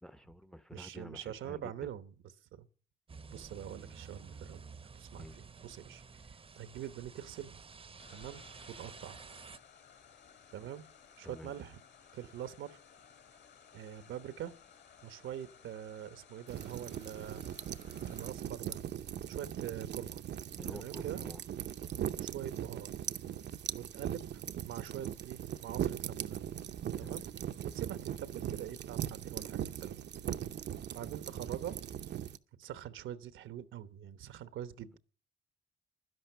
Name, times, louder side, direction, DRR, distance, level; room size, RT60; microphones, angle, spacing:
voice 1, 0.0-1.9 5.1-5.4 11.2-11.5 20.6-21.4 27.0-27.2, equal, 5° left, 0.8 m, -49 dB
voice 2, 0.7-2.1 2.5-2.7 3.3-4.6 4.9-6.0 6.6-7.6 8.1-9.2 10.5-10.9 11.2-11.8 12.1-12.8 13.7-14.5 15.0-17.4 18.1-18.8 19.3-20.2 20.7-21.2 22.2-22.9 23.7-26.4 27.0-27.3 27.6-30.0 30.9-31.8 32.6-35.0, right 10 dB, 80° right, 1.1 m, -44 dB
sound 1, 3.1-9.6, right 5 dB, 30° right, 0.8 m, -51 dB
sound 2, 8.0-18.3, left 7 dB, 60° left, 2.9 m, -59 dB
sound 3, 16.5-32.4, right 10 dB, 60° right, 0.8 m, -39 dB
12.0 x 11.0 x 6.7 m
cardioid pair, 90°, 20 cm